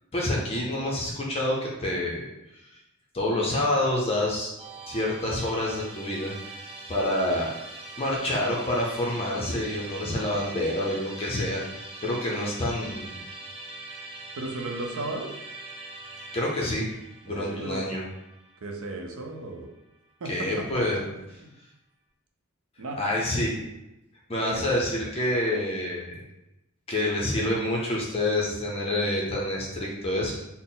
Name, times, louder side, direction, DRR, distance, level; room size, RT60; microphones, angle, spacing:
voice 1, 0.1-2.2 2.5-2.7 3.1-4.5 4.9-6.3 6.9-7.5 8.0-13.2 16.3-16.9 17.2-18.0 20.2-21.0 23.0-23.5 24.3-26.2 26.9-30.3, left 1 dB, 25° left, -3 dB, 0.5 m, -27 dB
Musical instrument, 4.6-19.8, right 2 dB, 25° right, 0.4 m, -43 dB
voice 2, 14.4-15.4 17.3-17.9 18.6-19.7 20.2-20.8 21.2-21.5 22.8-23.0 24.4-24.6, right 2 dB, 75° right, 3 dB, 0.6 m, -35 dB
4.0 x 2.0 x 3.8 m, 0.94 s
head